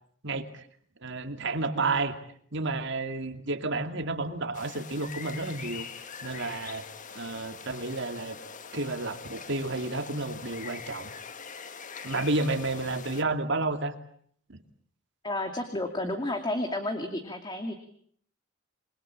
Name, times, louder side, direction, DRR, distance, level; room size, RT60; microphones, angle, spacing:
voice 1, 0.2-0.6 1.0-2.2 2.5-5.8 6.2-6.8 7.1-8.4 8.7-11.1 12.0-13.9 14.5-14.6, right 2 dB, 60° right, 7 dB, 2.5 m, -31 dB
sound 1, 4.5-13.2, left 6 dB, 40° left, 1.6 m, -43 dB
voice 2, 15.2-17.7, left 1 dB, 20° left, 6 dB, 2.5 m, -31 dB
28.5 x 22.0 x 8.7 m, 0.64 s
head